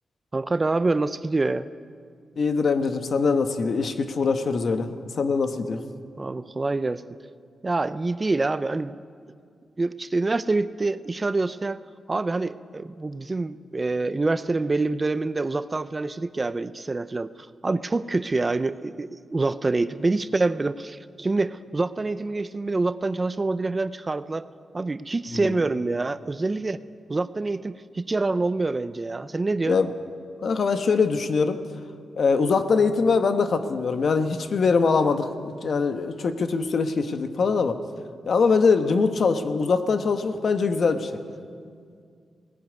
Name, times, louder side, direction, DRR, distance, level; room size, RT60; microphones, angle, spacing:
voice 1, 0.3-1.7 6.2-7.0 7.6-8.9 9.8-11.8 12.1-17.3 17.6-24.5 24.7-26.8 27.1-29.8, right 3 dB, 30° right, 14 dB, 0.5 m, -26 dB
voice 2, 2.4-5.8 25.3-25.5 29.7-29.9 30.4-31.6 32.2-37.8 38.3-41.2, left 4 dB, 60° left, 8 dB, 1.2 m, -23 dB
18.0 x 16.0 x 9.4 m, 2.2 s
cardioid pair, 100°, 0 cm